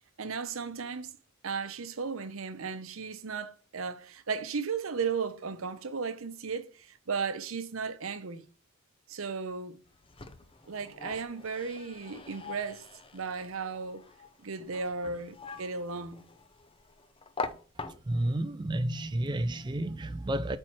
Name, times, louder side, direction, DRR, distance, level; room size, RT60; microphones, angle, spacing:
voice 1, 0.2-1.1 1.4-8.4 9.1-9.8 10.7-12.9 13.1-14.0 14.4-16.2, right 5 dB, 80° right, 0.7 m, -35 dB
sound 1, 9.8-18.4, left 3 dB, 25° left, 0.6 m, -44 dB
voice 2, 17.8-20.6, right 1 dB, 20° right, 0.4 m, -31 dB
4.6 x 4.4 x 5.8 m
head